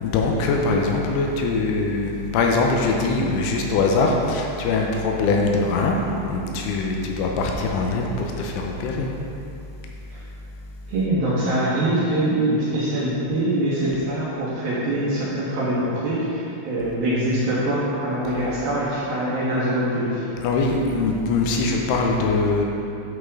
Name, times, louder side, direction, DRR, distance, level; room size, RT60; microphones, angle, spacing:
voice 1, 0.0-6.0 6.3-9.1 20.4-22.7, left 3 dB, 90° left, 0 dB, 3.2 m, -22 dB
voice 2, 10.9-20.2, right 1 dB, 65° right, -9 dB, 2.8 m, -23 dB
12.0 x 5.5 x 3.7 m, 2.8 s
omnidirectional pair, 5.6 m